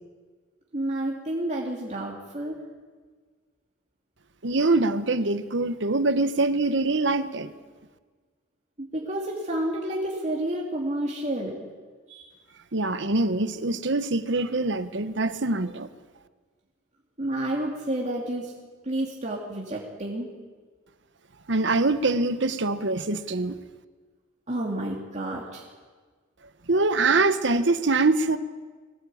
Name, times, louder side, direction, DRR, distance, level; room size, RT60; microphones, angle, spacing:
voice 1, 0.7-2.6 8.8-11.7 12.1-12.3 17.2-18.5 18.8-20.3 24.5-25.6, right 1 dB, 40° right, 2.6 m, -30 dB
voice 2, 4.4-7.5 12.7-15.9 21.5-23.6 26.7-28.4, right 3 dB, 65° right, 1.2 m, -24 dB
22.0 x 18.0 x 8.6 m
head